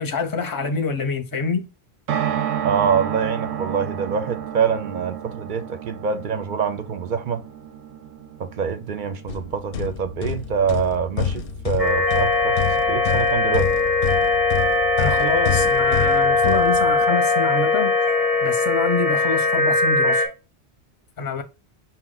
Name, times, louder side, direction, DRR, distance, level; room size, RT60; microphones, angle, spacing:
voice 1, 0.0-1.7 15.0-17.9 18.4-20.3 21.2-21.4, left 4 dB, 25° left, 0.6 m, -26 dB
sound 1, 2.1-14.3 14.6-14.7 14.9-15.0, right 9 dB, 85° right, 0.9 m, -32 dB
voice 2, 2.6-7.4 8.4-12.6 12.9-13.7, right 6 dB, 55° right, 0.6 m, -25 dB
sound 2, 9.3-17.3, left 7 dB, 65° left, 0.7 m, -29 dB
sound 3, 11.8-20.3, left 3 dB, ahead, 0.8 m, -20 dB
5.5 x 2.1 x 3.8 m
omnidirectional pair, 1.1 m